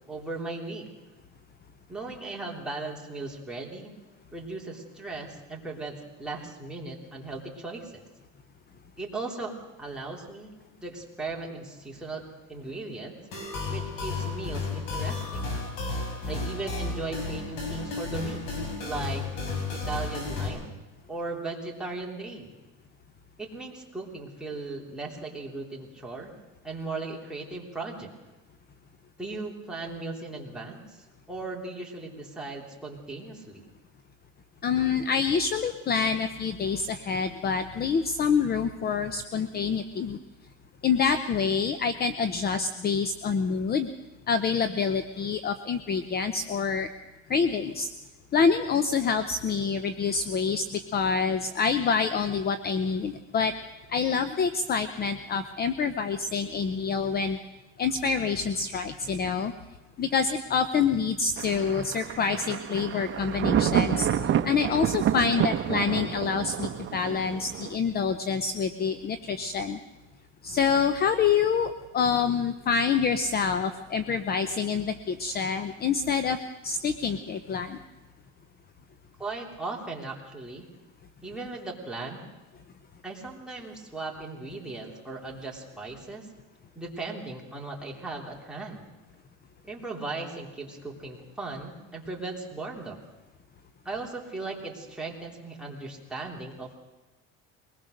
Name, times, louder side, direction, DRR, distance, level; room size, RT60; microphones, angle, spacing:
voice 1, 0.1-0.9 1.9-3.9 4.3-8.0 9.0-10.5 10.8-13.2 13.7-15.5 16.3-18.4 18.8-19.2 19.7-20.6 21.1-22.5 23.4-26.3 26.6-28.1 29.2-33.7 79.2-80.7 81.2-82.3 83.0-86.3 86.7-88.9 89.6-93.0 93.8-96.8, right 3 dB, ahead, -3 dB, 3.3 m, -37 dB
sound 1, 13.3-20.5, left 3 dB, 80° left, 6.7 m, -33 dB
voice 2, 34.6-40.2 40.8-43.9 44.3-46.9 47.3-47.9 48.3-53.5 53.9-57.4 57.8-59.5 60.0-69.8 70.4-76.4 76.6-77.8, left 6 dB, 30° left, 11 dB, 0.7 m, -27 dB
Thunder, 61.4-67.8, right 10 dB, 40° right, 1.1 m, -28 dB
22.5 x 19.5 x 6.5 m, 1.1 s
cardioid pair, 145°, 31 cm